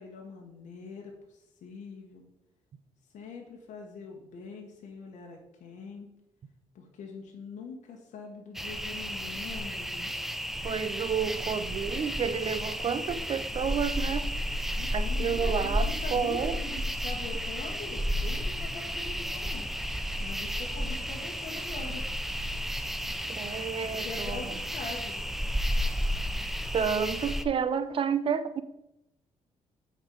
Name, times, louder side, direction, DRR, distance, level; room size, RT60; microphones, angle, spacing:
voice 1, 0.0-2.2 3.1-6.1 6.7-10.1 14.7-19.7 20.2-22.0 23.8-25.3, left 4 dB, 75° left, 0 dB, 1.2 m, -43 dB
sound 1, 8.5-27.4, equal, ahead, 0.5 m, -32 dB
voice 2, 10.6-14.3 14.9-16.6 23.3-24.6 26.7-28.6, right 7 dB, 45° right, 13 dB, 0.6 m, -30 dB
8.0 x 4.4 x 5.2 m, 0.88 s
cardioid pair, 110°, 13 cm